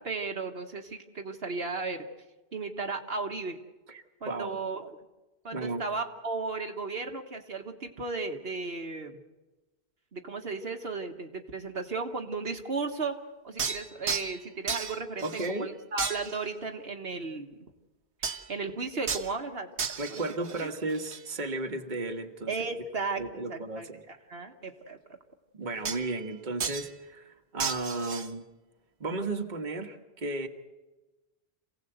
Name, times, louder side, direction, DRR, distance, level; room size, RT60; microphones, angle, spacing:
voice 1, 0.0-2.1 2.5-3.6 4.2-5.0 5.4-9.2 10.1-13.2 13.4-15.2 15.5-17.5 18.2-19.7 20.1-20.7 22.5-25.0, right 4 dB, 65° right, 4 dB, 1.6 m, -35 dB
voice 2, 3.9-4.6 5.5-5.8 15.2-15.7 20.0-22.5 23.2-24.0 25.5-28.4 29.0-30.5, right 2 dB, 45° right, 5 dB, 1.5 m, -34 dB
sound 1, 13.6-14.4 14.7-15.6 16.0-16.5 18.2-18.6 19.1-19.3 19.8-21.2 25.9-26.3 26.6-26.9 27.6-28.3, right 6 dB, 80° right, 1.4 m, -34 dB
27.5 x 17.0 x 8.0 m, 1.1 s
omnidirectional pair, 1.1 m